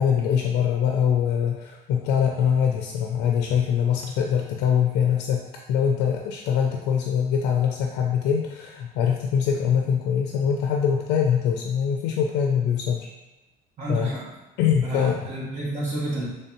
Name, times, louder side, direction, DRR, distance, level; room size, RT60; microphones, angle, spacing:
voice 1, 0.0-13.1 13.9-14.2 14.6-15.2, left 8 dB, 85° left, 1 dB, 0.4 m, -23 dB
voice 2, 13.8-14.3 14.8-16.2, right 1 dB, 45° right, -6 dB, 1.4 m, -30 dB
3.2 x 3.2 x 2.9 m, 1.1 s
cardioid pair, 110°, 17 cm